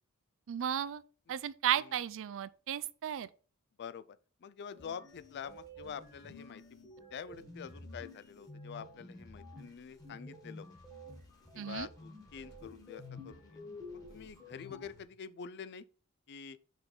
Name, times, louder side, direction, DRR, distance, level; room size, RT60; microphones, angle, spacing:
voice 1, 0.5-1.0 1.3-3.3 11.6-11.9, right 10 dB, 60° right, 0.4 m, -34 dB
voice 2, 3.8-6.6 7.1-10.7 11.5-13.6 13.9-15.9 16.3-16.6, left 7 dB, 50° left, 0.4 m, -46 dB
sound 1, 4.7-15.0, left 2 dB, 15° left, 1.7 m, -51 dB
5.6 x 3.9 x 4.3 m
head